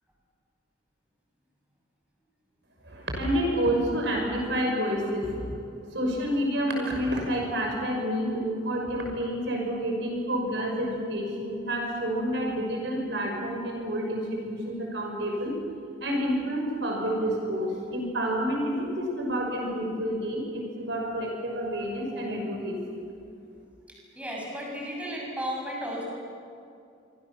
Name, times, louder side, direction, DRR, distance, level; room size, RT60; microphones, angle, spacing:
voice 1, 2.8-5.4 5.9-15.5 16.0-22.8, equal, 65° right, 1 dB, 5.9 m, -29 dB
voice 2, 23.9-26.0, equal, 5° right, -3 dB, 6.9 m, -34 dB
25.5 x 25.5 x 7.2 m, 2.5 s
head